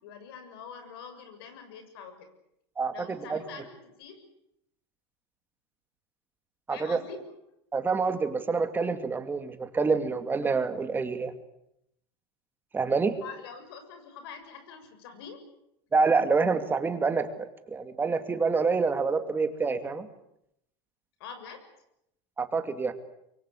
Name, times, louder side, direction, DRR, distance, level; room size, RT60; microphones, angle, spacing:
voice 1, 0.0-2.3 2.9-4.2 6.7-7.2 13.2-15.4 21.2-21.7, left 6 dB, 75° left, 8 dB, 7.0 m, -45 dB
voice 2, 2.8-3.4 6.7-7.0 7.7-11.3 12.7-13.1 15.9-20.1 22.4-22.9, right 4 dB, 15° right, 8 dB, 2.4 m, -27 dB
25.0 x 23.5 x 8.4 m, 0.79 s
supercardioid pair, 135°, 13 cm